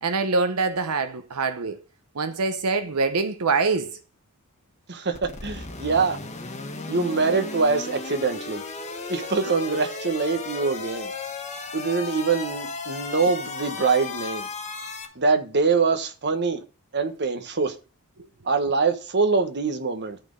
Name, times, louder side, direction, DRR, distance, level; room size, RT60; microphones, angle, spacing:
voice 1, 0.0-1.8 2.1-4.0, right 4 dB, 90° right, 0.8 m, -24 dB
voice 2, 4.9-6.2 6.9-8.6 9.1-11.1 11.7-14.5 15.2-16.6 16.9-17.7 18.4-20.2, right 4 dB, 55° right, 1.3 m, -24 dB
sound 1, 5.1-15.1, left 4 dB, 35° left, 1.5 m, -35 dB
13.0 x 4.4 x 5.3 m
head